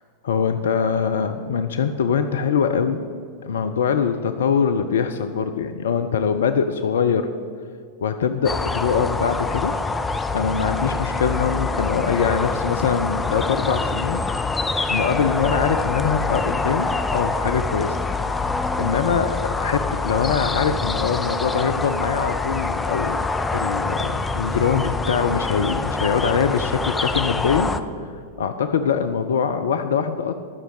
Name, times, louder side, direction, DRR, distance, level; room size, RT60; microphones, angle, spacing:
voice 1, 0.2-3.0 3.4-7.3 8.0-9.8 10.3-14.2 14.8-18.0 18.5-23.2 23.5-27.8 28.4-30.3, left 6 dB, 65° left, 9 dB, 0.5 m, -23 dB
sound 1, 8.4-27.8, left 3 dB, 10° left, 0.5 m, -25 dB
11.0 x 6.3 x 7.9 m, 2.4 s
figure-of-eight pair, 90°, 0 cm